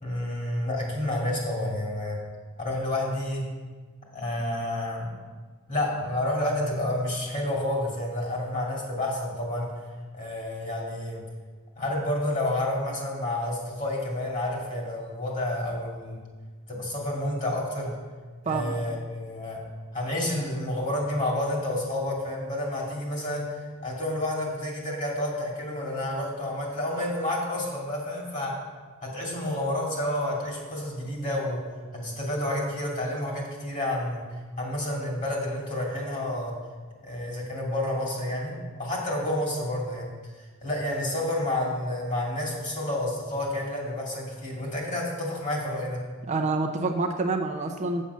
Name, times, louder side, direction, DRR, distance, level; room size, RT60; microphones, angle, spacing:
voice 1, 0.0-2.2 2.6-3.4 4.1-5.1 5.7-9.7 10.1-11.2 11.8-16.2 16.7-17.9 18.4-19.6 19.9-28.5 29.0-31.6 31.9-34.2 34.6-36.5 37.0-40.1 40.4-46.0, left 1 dB, 40° left, -2 dB, 2.4 m, -29 dB
voice 2, 46.3-48.0, right 3 dB, 35° right, 4 dB, 0.5 m, -27 dB
7.4 x 7.3 x 5.5 m, 1.4 s
head